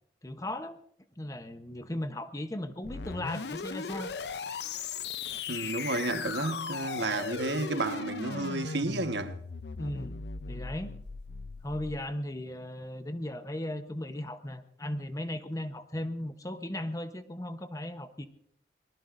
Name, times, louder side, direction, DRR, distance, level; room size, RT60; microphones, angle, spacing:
voice 1, 0.2-0.8 1.2-4.1 9.8-10.2 10.5-10.9 11.6-18.3, left 1 dB, 20° left, 0.9 m, -37 dB
sound 1, 2.8-12.0, left 5 dB, 70° left, 0.6 m, -38 dB
voice 2, 5.5-9.3, right 2 dB, 80° right, 1.3 m, -31 dB
23.5 x 19.5 x 2.6 m
head